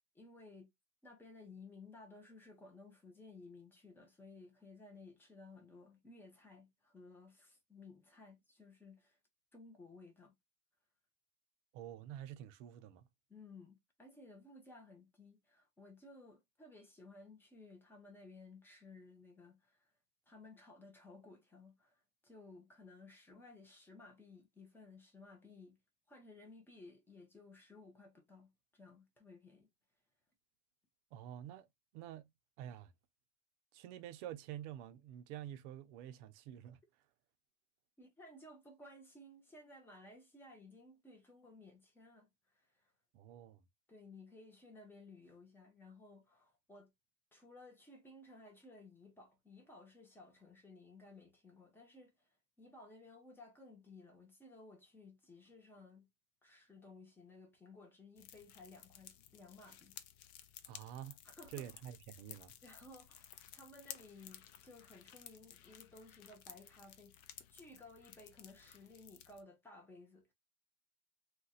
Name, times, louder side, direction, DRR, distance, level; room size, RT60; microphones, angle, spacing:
voice 1, 0.1-0.7 1.0-9.2 9.5-10.3 13.3-19.9 20.3-25.8 26.1-29.7 38.0-42.9 43.9-46.9 47.3-56.1 56.4-60.0 61.2-61.7 62.6-70.3, left 3 dB, 5° left, 0.5 m, -57 dB
voice 2, 11.7-13.1 31.1-31.7 31.9-32.3 32.6-32.9 33.7-36.8 43.1-43.6 60.7-61.2 61.5-62.5, right 11 dB, 50° right, 0.6 m, -48 dB
sound 1, 58.2-69.4, left 11 dB, 65° left, 0.6 m, -56 dB
2.5 x 2.2 x 4.0 m
supercardioid pair, 135°, 47 cm